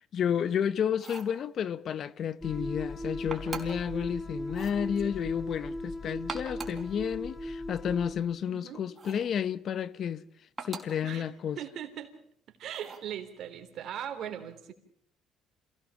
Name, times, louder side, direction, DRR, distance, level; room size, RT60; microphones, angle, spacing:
voice 1, 0.1-10.2 10.6-11.6, left 8 dB, 55° left, 0.9 m, -31 dB
sound 1, 0.9-1.4 3.3-3.9 4.5-4.8 6.1-6.9 9.0-9.3 10.6-11.0 12.7-13.1, right 4 dB, 30° right, 4.7 m, -41 dB
sound 2, 2.4-8.1, left 1 dB, 10° left, 5.7 m, -37 dB
voice 2, 8.5-8.8 11.0-11.3 11.6-12.1 12.5-14.7, right 10 dB, 60° right, 3.5 m, -39 dB
27.5 x 17.5 x 7.3 m
cardioid pair, 90°, 0 cm